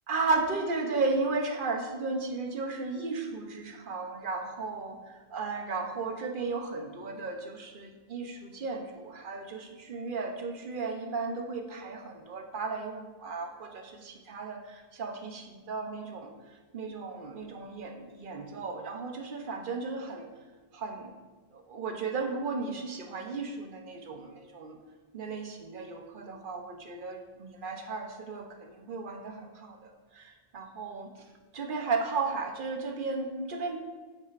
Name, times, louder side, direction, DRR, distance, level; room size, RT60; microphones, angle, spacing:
voice 1, 0.1-5.0 5.3-16.3 16.7-20.3 20.7-21.1 21.7-24.8 25.1-31.1 31.5-33.8, right 3 dB, 55° right, 3 dB, 0.9 m, -34 dB
7.6 x 5.7 x 2.5 m, 1.4 s
omnidirectional pair, 1.1 m